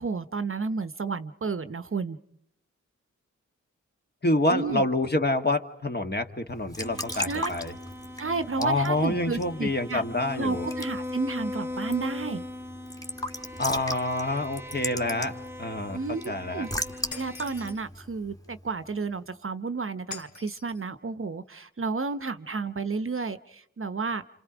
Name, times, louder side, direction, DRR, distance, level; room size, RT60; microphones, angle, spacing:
voice 1, 0.0-2.2 4.5-4.9 7.1-7.5 8.2-10.0 10.4-12.4 15.9-16.7 17.1-24.2, right 4 dB, 45° right, 12 dB, 0.9 m, -32 dB
voice 2, 4.2-7.7 8.6-10.7 13.6-16.0 16.3-16.7, left 2 dB, 35° left, 5 dB, 1.6 m, -27 dB
Raindrop / Drip / Trickle dribble, 6.5-19.0, equal, 10° left, 1.7 m, -39 dB
sound 1, 6.8-17.7, left 2 dB, 10° right, 1.0 m, -39 dB
Shatter, 17.1-17.9 20.1-20.8, left 4 dB, 70° left, 2.4 m, -43 dB
29.0 x 28.0 x 5.0 m, 0.68 s
wide cardioid pair, 80°, 30 cm